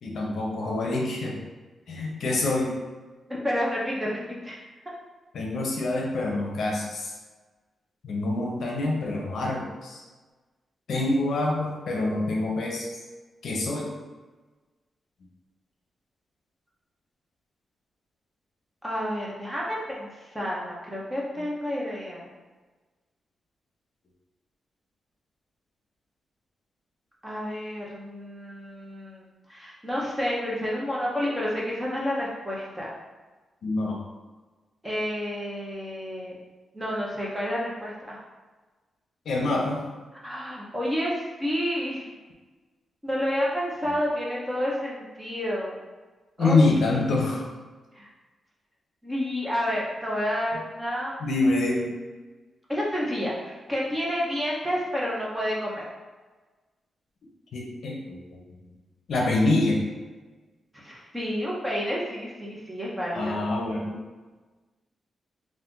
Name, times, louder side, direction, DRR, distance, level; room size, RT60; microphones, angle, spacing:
voice 1, 0.0-1.4 1.9-2.7 5.3-7.1 8.0-10.0 10.9-12.9 13.4-13.9 21.4-21.5 33.6-34.0 39.3-39.8 46.4-47.4 51.2-51.9 57.5-58.4 59.1-59.8 63.1-64.0, left 2 dB, 65° left, -1 dB, 0.6 m, -26 dB
voice 2, 3.4-4.6 18.8-22.3 27.2-29.2 29.5-32.9 34.8-36.4 36.7-38.2 40.2-42.1 43.0-45.8 46.4-46.6 47.9-48.1 49.0-51.1 52.7-55.8 60.7-63.4, equal, 10° right, -5 dB, 0.6 m, -30 dB
2.5 x 2.5 x 3.6 m, 1.3 s
wide cardioid pair, 175°, 0 cm